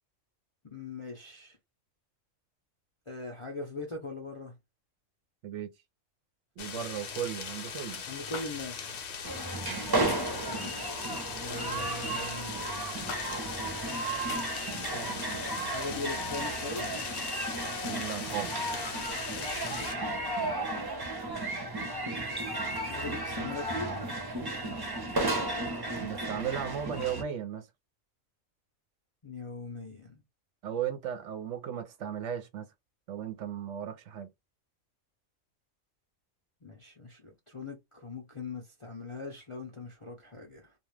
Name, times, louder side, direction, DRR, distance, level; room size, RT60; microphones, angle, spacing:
voice 1, 0.6-1.6 3.1-4.6 6.6-6.8 8.1-9.0 10.5-11.1 11.4-12.6 15.6-17.0 19.3-20.0 22.8-23.9 29.2-30.2 36.6-40.7, left 3 dB, 40° left, 0.4 m, -41 dB
sound 1, 6.6-19.9, left 6 dB, 60° left, 0.8 m, -40 dB
voice 2, 6.6-8.0 9.6-9.9 17.8-18.5 26.0-27.7 30.6-32.6 33.1-34.3, right 9 dB, 65° right, 0.8 m, -36 dB
sound 2, 8.3-8.5 10.1-10.4 11.7-12.0 13.1-13.2 14.3-14.4, left 5 dB, 80° left, 1.1 m, -40 dB
sound 3, 9.2-27.2, right 2 dB, 25° right, 0.6 m, -34 dB
2.3 x 2.3 x 3.2 m
omnidirectional pair, 1.4 m